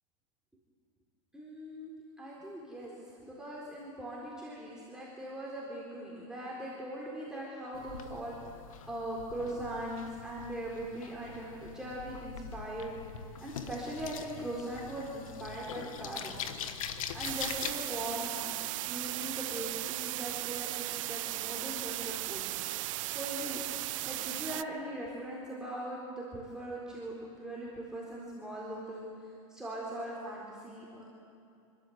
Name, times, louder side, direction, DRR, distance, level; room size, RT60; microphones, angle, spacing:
voice 1, 1.3-2.9 3.2-8.4 8.9-12.9 13.4-16.3 17.1-18.5 18.9-22.4 23.1-29.0 29.5-31.0, right 1 dB, 5° right, -6 dB, 4.1 m, -40 dB
sound 1, 7.7-17.7, left 7 dB, 85° left, 1.3 m, -43 dB
sound 2, 17.2-24.6, right 17 dB, 70° right, 0.5 m, -36 dB
27.0 x 13.0 x 8.0 m, 2.5 s
hypercardioid pair, 115°, 17 cm